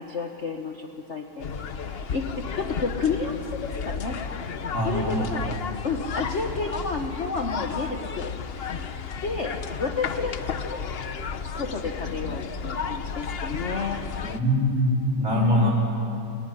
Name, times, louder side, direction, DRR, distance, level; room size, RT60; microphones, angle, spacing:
voice 1, 0.0-1.4 1.7-3.4 3.8-4.1 4.8-5.6 5.8-8.3 8.7-8.8 9.2-10.3 10.6-10.8 11.6-14.0 15.3-15.7, left 4 dB, 40° left, 3 dB, 1.2 m, -30 dB
sound 1, 1.4-14.4, left 6 dB, 80° left, 0.5 m, -33 dB
voice 2, 4.7-5.3 14.3-15.7, equal, 40° right, -3 dB, 5.0 m, -23 dB
20.0 x 19.0 x 10.0 m, 2.7 s
omnidirectional pair, 2.2 m